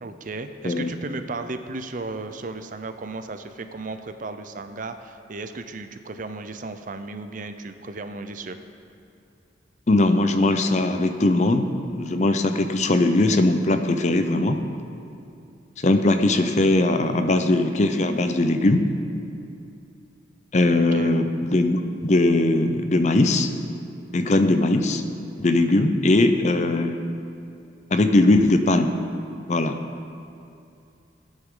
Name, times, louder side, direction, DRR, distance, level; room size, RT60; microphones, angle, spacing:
voice 1, 0.0-8.6 20.7-21.2 25.6-25.9, right 3 dB, 45° right, 9 dB, 0.5 m, -35 dB
voice 2, 9.9-14.6 15.8-18.8 20.5-23.5 24.1-25.0 25.4-27.0 27.9-28.9 29.5-29.8, left 2 dB, 40° left, 7 dB, 0.6 m, -20 dB
17.0 x 9.1 x 3.8 m, 2.6 s
head